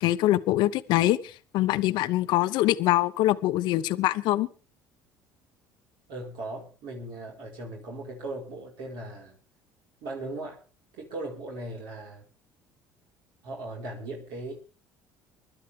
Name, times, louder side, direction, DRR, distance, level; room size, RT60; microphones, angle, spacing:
voice 1, 0.0-4.5, left 15 dB, 70° left, 12 dB, 0.8 m, -24 dB
voice 2, 6.1-9.3 10.0-10.6 10.9-12.2 13.4-14.5, right 2 dB, 75° right, -2 dB, 4.8 m, -38 dB
24.0 x 12.0 x 3.6 m, 0.34 s
supercardioid pair, 80°, 8 cm